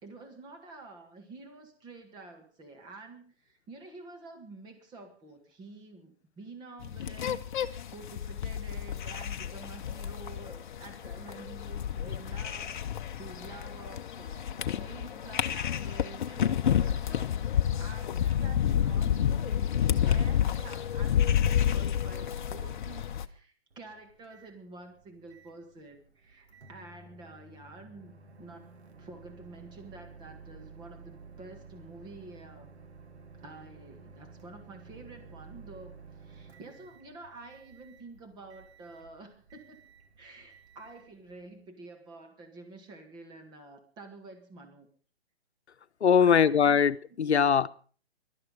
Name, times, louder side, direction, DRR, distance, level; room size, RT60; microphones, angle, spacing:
voice 1, 0.0-32.7 33.4-39.9 40.2-44.9 46.2-46.8 47.1-47.5, right 3 dB, 15° right, 1.9 m, -49 dB
sound 1, 6.8-23.3, left 9 dB, 45° left, 1.0 m, -30 dB
Microwave oven, 23.7-41.7, right 4 dB, 80° right, 2.1 m, -53 dB
voice 2, 46.0-47.7, left 7 dB, 85° left, 0.9 m, -22 dB
18.0 x 12.5 x 5.3 m
hypercardioid pair, 150°, 32 cm